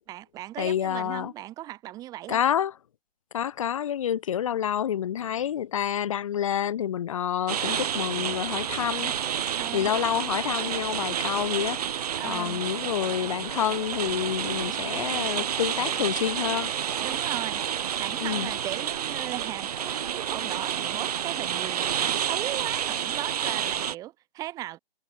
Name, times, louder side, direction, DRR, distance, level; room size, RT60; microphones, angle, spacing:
voice 1, 0.1-2.4 9.6-9.9 12.2-12.6 17.0-24.8, right 14 dB, 10° right, 2.2 m, -37 dB
voice 2, 0.6-1.3 2.3-2.7 3.3-9.3 9.7-11.8 12.2-16.7 18.2-18.5, left 9 dB, 35° left, 1.5 m, -28 dB
sound 1, 7.5-24.0, right 9 dB, 40° right, 4.3 m, -30 dB
figure-of-eight pair, 145°, 30 cm